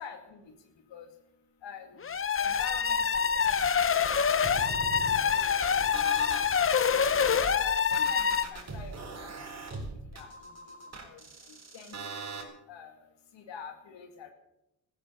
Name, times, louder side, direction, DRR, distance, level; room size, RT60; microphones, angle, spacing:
voice 1, 0.0-4.4 5.3-7.1 7.5-12.2 12.7-14.3, left 7 dB, 75° left, 5 dB, 2.3 m, -47 dB
sound 1, 2.0-8.5, left 6 dB, 30° left, 0.8 m, -26 dB
sound 2, 4.4-6.5 6.9-12.4, right 3 dB, 35° right, 4.0 m, -41 dB
15.0 x 14.0 x 6.7 m, 0.87 s
cardioid pair, 115°, 44 cm